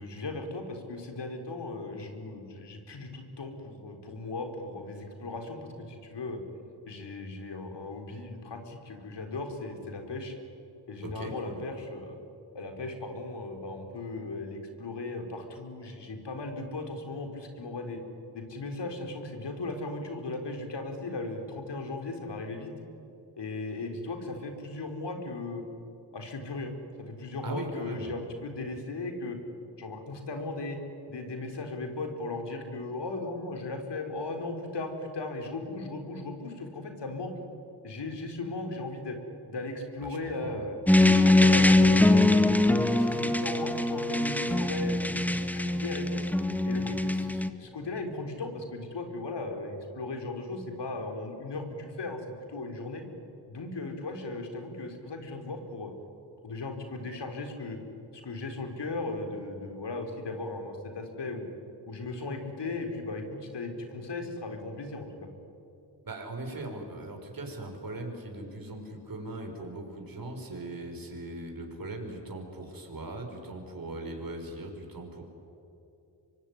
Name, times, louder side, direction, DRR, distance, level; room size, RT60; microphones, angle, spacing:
voice 1, 0.0-6.4 6.9-10.3 10.9-12.2 12.5-18.0 18.3-22.7 23.4-25.6 26.1-26.7 27.1-29.4 29.8-30.8 31.1-37.3 37.8-39.2 39.5-40.8 41.0-46.2 46.6-52.2 52.5-53.0 53.5-55.9 56.4-57.8 58.1-61.4 61.9-65.3, left 2 dB, 65° left, 4 dB, 4.4 m, -37 dB
voice 2, 11.0-11.6 27.4-28.1 40.0-40.6 66.0-75.2, right 2 dB, 50° right, 3 dB, 5.9 m, -39 dB
sound 1, 40.9-47.5, left 2 dB, 5° left, 1.7 m, -23 dB
25.0 x 23.5 x 9.9 m, 2.8 s
cardioid pair, 55°, 45 cm